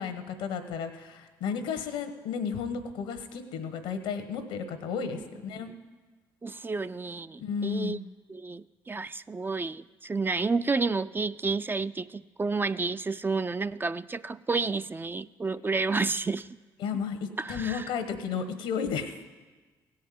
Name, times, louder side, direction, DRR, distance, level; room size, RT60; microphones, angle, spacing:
voice 1, 0.0-5.8 7.4-8.0 16.8-19.2, left 6 dB, 85° left, 8 dB, 1.1 m, -33 dB
voice 2, 6.4-8.0 8.3-16.5 17.4-17.9, right 4 dB, 25° right, 14 dB, 0.4 m, -30 dB
16.5 x 5.6 x 9.3 m, 1.3 s
supercardioid pair, 60°, 9 cm